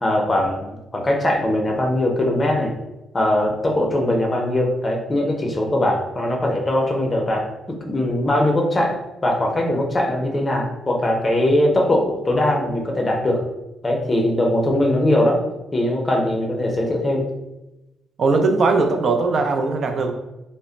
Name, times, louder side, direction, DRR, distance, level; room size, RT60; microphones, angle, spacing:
voice 1, 0.0-2.7 3.1-13.4 13.8-15.4 15.7-17.3, left 1 dB, 25° left, 1 dB, 0.6 m, -21 dB
voice 2, 18.2-20.1, right 3 dB, 55° right, 4 dB, 0.4 m, -19 dB
2.1 x 2.1 x 3.7 m, 0.97 s
cardioid pair, 90°, 0 cm